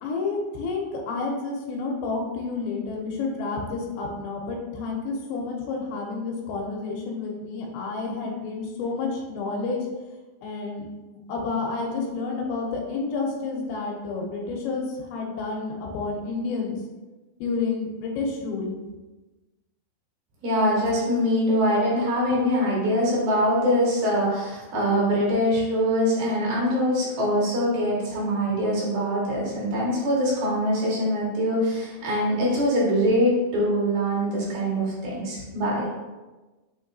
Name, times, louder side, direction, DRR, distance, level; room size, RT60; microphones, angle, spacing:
voice 1, 0.0-9.9 10.4-16.8 17.4-18.8, left 4 dB, 85° left, 0 dB, 2.5 m, -30 dB
voice 2, 20.4-35.9, equal, 75° right, -5 dB, 3.0 m, -23 dB
6.4 x 3.0 x 2.6 m, 1.2 s
omnidirectional pair, 4.4 m